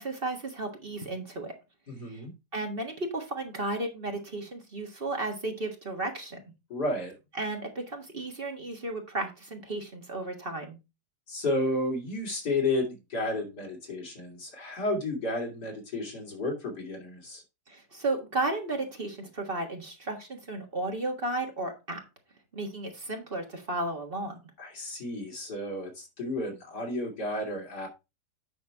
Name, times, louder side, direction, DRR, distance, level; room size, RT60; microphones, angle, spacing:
voice 1, 0.0-1.5 2.1-2.2 2.5-6.4 7.4-10.8 17.7-22.0 22.5-24.4, right 2 dB, 35° right, 2 dB, 1.7 m, -34 dB
voice 2, 1.9-2.3 6.7-7.1 11.3-17.4 24.6-27.9, left 2 dB, 80° left, 0 dB, 3.4 m, -32 dB
8.9 x 6.1 x 3.5 m, 0.26 s
omnidirectional pair, 1.7 m